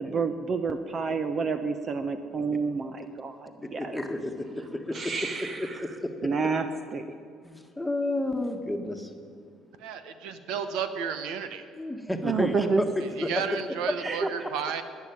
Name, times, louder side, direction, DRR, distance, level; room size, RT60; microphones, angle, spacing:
voice 1, 0.0-4.0 4.9-5.6 6.2-6.6 6.9-7.1 12.2-12.8 14.0-14.3, right 4 dB, 45° right, 8 dB, 0.8 m, -29 dB
voice 2, 3.6-5.1 5.4-6.3 7.4-9.4 11.7-12.8 13.2-13.6 14.2-14.3, left 1 dB, 5° left, 4 dB, 1.6 m, -32 dB
voice 3, 9.8-11.7 13.3-14.8, right 7 dB, 85° right, 10 dB, 1.0 m, -32 dB
12.0 x 10.0 x 9.4 m, 2.2 s
cardioid pair, 95°, 0 cm